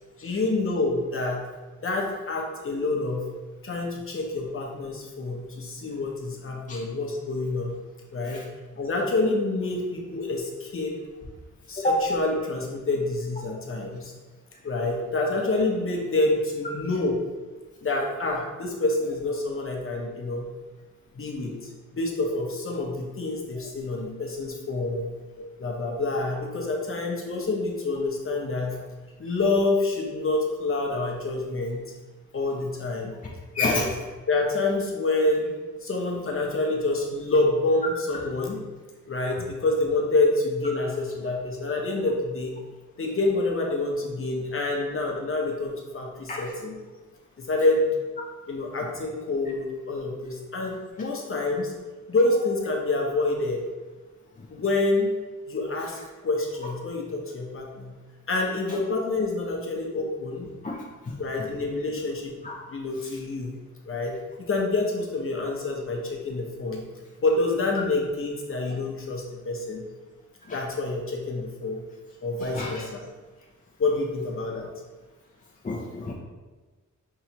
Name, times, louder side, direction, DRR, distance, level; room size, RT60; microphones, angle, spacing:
voice 1, 0.2-1.4 1.8-3.3 3.6-7.7 8.1-8.4 8.8-10.9 11.7-14.1 14.6-17.2 17.8-20.5 21.1-25.1 25.6-28.8 29.2-31.8 32.3-33.2 33.6-33.9 34.3-35.5 35.8-38.6 39.1-42.5 43.0-46.8 47.4-47.9 48.5-51.7 52.1-53.6 54.5-55.1 55.5-57.9 58.3-60.5 61.2-62.3 62.7-63.5 63.9-66.8 67.2-69.8 70.5-71.8 72.2-73.1 73.8-74.7, left 2 dB, 45° left, 0 dB, 0.8 m, -27 dB
voice 2, 33.6-33.9 46.3-46.4 60.6-60.8 61.1-61.2 72.6-72.7 75.6-76.1, left 3 dB, 25° left, -3 dB, 0.4 m, -26 dB
5.6 x 3.1 x 2.9 m, 1.3 s
wide cardioid pair, 165°, 31 cm